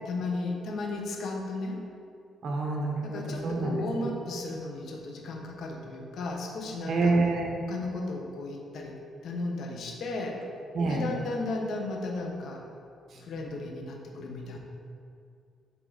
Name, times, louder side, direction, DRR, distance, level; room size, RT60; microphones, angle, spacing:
voice 1, 0.0-1.8 3.0-7.2 7.7-8.9 9.2-10.4 10.9-12.6 13.2-14.6, left 2 dB, 70° left, 0 dB, 1.0 m, -34 dB
voice 2, 2.4-3.8 6.9-7.6 10.7-11.1, right 3 dB, 60° right, 0 dB, 1.2 m, -27 dB
7.8 x 3.8 x 4.0 m, 2.4 s
cardioid pair, 90°, 0 cm